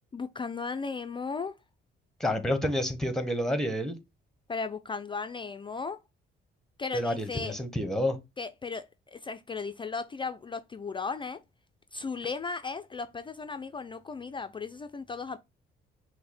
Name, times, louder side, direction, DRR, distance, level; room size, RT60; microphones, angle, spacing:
voice 1, 0.1-1.5 4.5-6.0 6.8-7.5 8.4-8.8 9.1-11.4 11.9-15.4, left 4 dB, 25° left, 0.3 m, -36 dB
voice 2, 2.2-4.0 6.9-8.2, left 1 dB, ahead, 0.9 m, -29 dB
5.4 x 2.1 x 4.1 m
cardioid pair, 90°, 20 cm